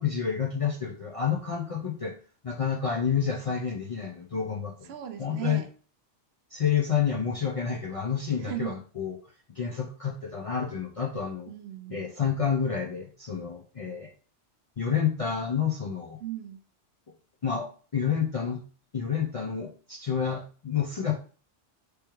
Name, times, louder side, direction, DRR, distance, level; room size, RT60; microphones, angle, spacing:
voice 1, 0.0-2.1 2.4-4.9 5.2-5.6 6.5-9.2 9.5-11.5 11.9-14.1 14.8-16.2 17.4-18.6 18.9-21.1, left 7 dB, 45° left, -1 dB, 0.5 m, -29 dB
voice 2, 4.9-5.7 8.4-8.8 11.5-12.0 16.2-16.6, right 13 dB, 70° right, 7 dB, 0.8 m, -37 dB
3.4 x 3.2 x 4.5 m, 0.41 s
omnidirectional pair, 1.2 m